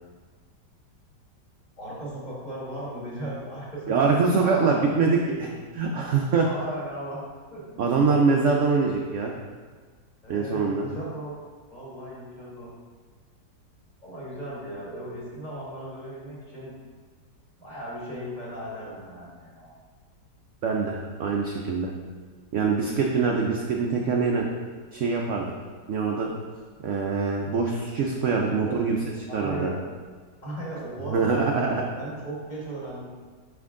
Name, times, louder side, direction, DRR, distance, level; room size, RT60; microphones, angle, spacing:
voice 1, 1.8-5.0 6.4-7.2 7.5-7.8 10.2-11.3 11.7-12.7 14.0-16.7 17.6-19.7 28.3-28.8 29.3-29.8 30.4-31.4 31.9-33.1, right 1 dB, 25° left, -7 dB, 1.6 m, -37 dB
voice 2, 3.9-5.5 5.7-6.5 7.8-9.3 10.3-10.9 20.6-21.9 22.5-24.4 24.9-25.5 25.9-26.3 26.8-29.7 31.1-31.9, right 4 dB, 70° right, 0 dB, 0.7 m, -24 dB
5.9 x 5.2 x 3.7 m, 1.5 s
omnidirectional pair, 1.9 m